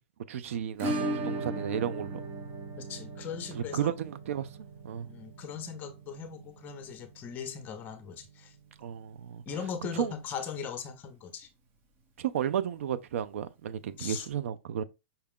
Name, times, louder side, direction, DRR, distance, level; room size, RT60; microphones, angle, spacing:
voice 1, 0.3-2.2 3.6-4.5 4.8-5.1 8.8-9.4 9.9-10.1 12.2-14.8, right 9 dB, 75° right, 0.5 m, -33 dB
Acoustic guitar / Strum, 0.8-9.4 9.6-9.7 10.0-10.1 10.5-10.6 12.6-12.7 13.9-14.0, right 2 dB, 30° right, 0.9 m, -38 dB
voice 2, 2.8-3.9 5.0-8.5 9.5-11.5 14.0-14.3, left 7 dB, 25° left, 0.7 m, -39 dB
5.6 x 2.3 x 3.6 m
supercardioid pair, 150°, 7 cm